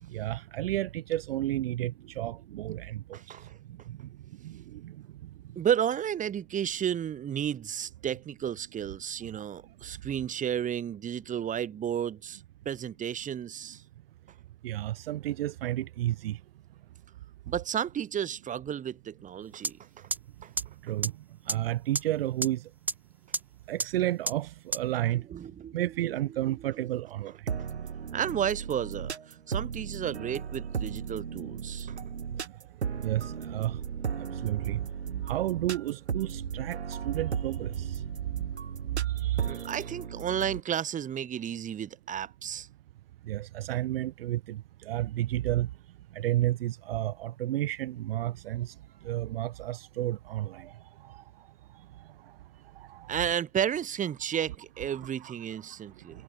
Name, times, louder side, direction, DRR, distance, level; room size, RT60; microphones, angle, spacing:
voice 1, 0.1-3.0 3.9-4.0 4.4-4.9 14.6-16.4 20.8-21.1 21.5-22.7 23.7-25.2 25.7-27.3 33.0-33.8 34.4-34.8 35.2-38.0 39.1-39.8 43.3-45.7 46.1-48.7 49.0-50.7 51.0-51.2 52.9-53.2 54.9-55.3, right 14 dB, 65° right, 1.6 m, -31 dB
voice 2, 3.1-3.6 5.6-13.8 17.5-20.1 20.4-20.5 25.3-25.9 26.8-26.9 28.1-31.9 39.4-42.7 53.1-56.2, right 9 dB, 25° right, 4.0 m, -32 dB
sound 1, 19.6-19.7 20.1-20.2 20.6-20.7 21.0-21.1 21.5-21.6 22.0-22.1 22.4-22.5 22.9-23.0 23.3-23.4 23.8-23.9 24.3-24.4 24.7-24.8, right 3 dB, 5° right, 0.8 m, -28 dB
sound 2, 27.5-40.6, right 6 dB, 85° right, 3.2 m, -36 dB
hypercardioid pair, 110°, 32 cm